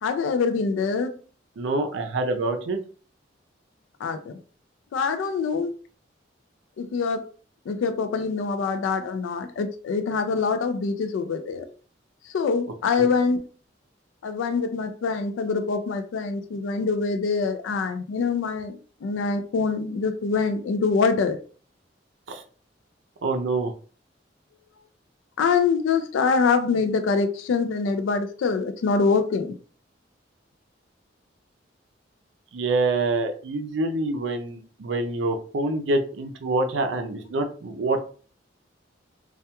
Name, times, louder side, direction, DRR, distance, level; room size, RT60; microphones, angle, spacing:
voice 1, 0.0-1.1 4.0-4.3 4.9-5.7 6.8-7.3 7.7-11.7 12.3-13.4 14.2-21.4 25.4-29.6, left 5 dB, 85° left, 0.3 m, -24 dB
voice 2, 1.6-2.8 13.0-13.1 22.3-22.4 23.2-23.7 32.5-38.0, right 2 dB, 75° right, 0.4 m, -26 dB
2.3 x 2.2 x 2.8 m
head